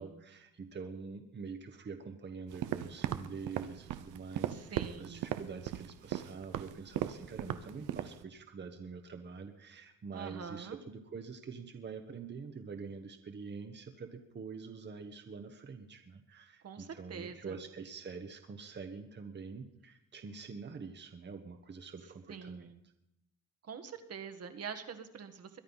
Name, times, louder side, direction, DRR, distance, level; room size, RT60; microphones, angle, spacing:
voice 1, 0.0-22.7, right 5 dB, 35° right, 6 dB, 1.3 m, -46 dB
sound 1, 2.5-8.2, right 12 dB, 85° right, 0.8 m, -37 dB
voice 2, 4.5-5.3 10.1-10.8 16.6-17.4 22.3-22.8 23.7-25.6, right 6 dB, 55° right, 7 dB, 1.7 m, -45 dB
22.5 x 10.0 x 5.7 m, 0.84 s
cardioid pair, 90°, 30 cm